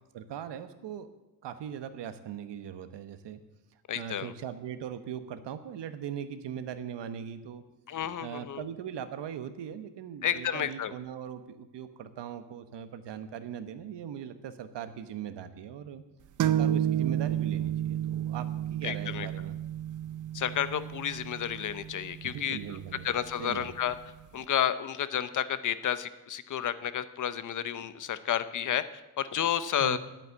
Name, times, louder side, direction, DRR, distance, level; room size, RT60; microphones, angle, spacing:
voice 1, 0.1-1.1 1.4-3.4 3.9-7.6 8.2-16.0 16.5-19.6 22.2-23.1 23.4-23.7 29.8-30.0, right 9 dB, 85° right, 10 dB, 1.2 m, -40 dB
voice 2, 3.9-4.3 7.9-8.6 10.2-10.9 18.8-19.3 20.3-22.8 23.0-23.9 24.3-30.0, left 9 dB, 50° left, 14 dB, 0.6 m, -31 dB
sound 1, 16.4-23.9, right 10 dB, 50° right, 0.6 m, -32 dB
11.0 x 9.0 x 8.6 m, 1.0 s
wide cardioid pair, 175°, 41 cm